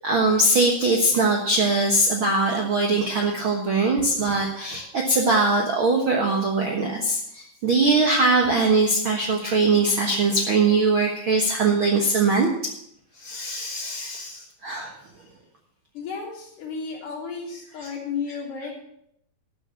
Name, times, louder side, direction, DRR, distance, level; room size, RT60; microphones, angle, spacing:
voice 1, 0.0-12.5 13.2-14.9, right 3 dB, 55° right, 0 dB, 1.5 m, -21 dB
voice 2, 15.9-18.7, left 5 dB, 60° left, -4 dB, 4.8 m, -33 dB
13.0 x 7.7 x 7.0 m, 0.73 s
omnidirectional pair, 4.1 m